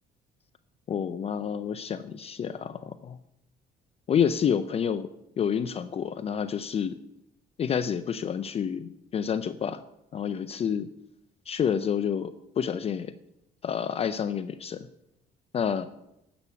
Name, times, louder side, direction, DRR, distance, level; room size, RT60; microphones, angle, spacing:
voice 1, 0.9-3.2 4.1-5.1 5.4-7.0 7.6-9.8 10.1-10.9 11.5-13.1 13.6-14.9 15.5-15.9, left 8 dB, 35° left, 9 dB, 0.4 m, -29 dB
8.3 x 6.0 x 8.1 m, 0.84 s
cardioid pair, 110°, 17 cm